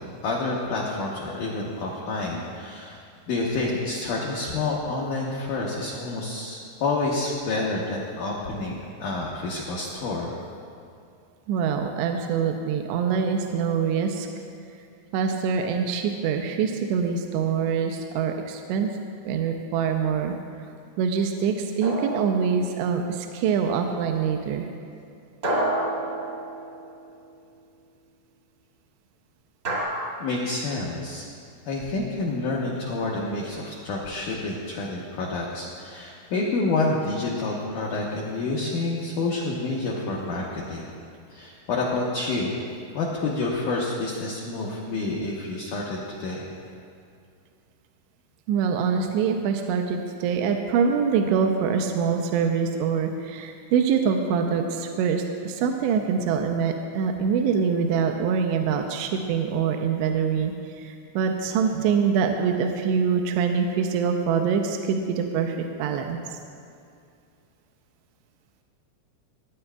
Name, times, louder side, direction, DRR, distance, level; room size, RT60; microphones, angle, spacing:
voice 1, 0.0-3.0 3.3-10.3 30.2-31.3 31.7-40.9 41.3-42.5 42.9-46.5, left 3 dB, 80° left, -4 dB, 1.8 m, -28 dB
voice 2, 11.5-14.3 15.1-18.9 19.2-20.3 21.0-24.7 48.5-66.2, right 6 dB, 85° right, 4 dB, 2.8 m, -24 dB
sound 1, 21.8-23.0 25.4-27.1 29.6-29.8, right 1 dB, 50° right, 1.2 m, -29 dB
19.0 x 9.7 x 2.3 m, 2.4 s
omnidirectional pair, 5.0 m